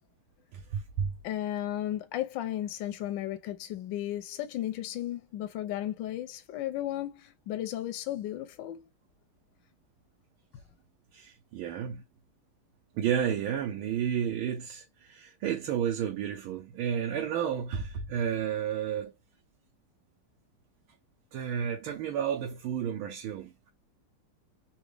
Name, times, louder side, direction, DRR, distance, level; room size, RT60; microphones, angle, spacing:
voice 1, 0.7-1.1 11.1-12.0 13.0-19.1 21.3-23.7, right 8 dB, 80° right, 1.5 m, -31 dB
voice 2, 1.2-8.9, left 12 dB, 75° left, 1.2 m, -34 dB
4.0 x 2.3 x 3.2 m
omnidirectional pair, 2.3 m